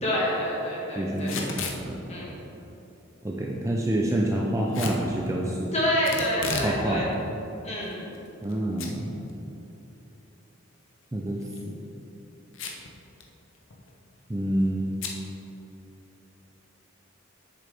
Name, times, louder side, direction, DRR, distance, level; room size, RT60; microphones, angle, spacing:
voice 1, 0.0-1.3 2.1-2.3 5.7-7.1 7.6-8.1, equal, 30° left, -5 dB, 1.7 m, -27 dB
voice 2, 0.9-2.1 3.2-5.7 6.6-7.1 8.4-9.2 11.1-11.9 14.3-15.0, right 1 dB, 15° right, -2 dB, 0.4 m, -28 dB
Packing tape duct tape / Tearing, 1.2-1.8 4.7-5.0 6.0-6.8 7.1-7.2 7.9-8.5 8.8-8.9 9.3-9.4 11.4-11.6 12.5-12.9 13.2-13.3 13.5-13.9 15.0-15.2, left 4 dB, 65° left, 0.9 m, -33 dB
8.5 x 6.7 x 3.4 m, 3.0 s
head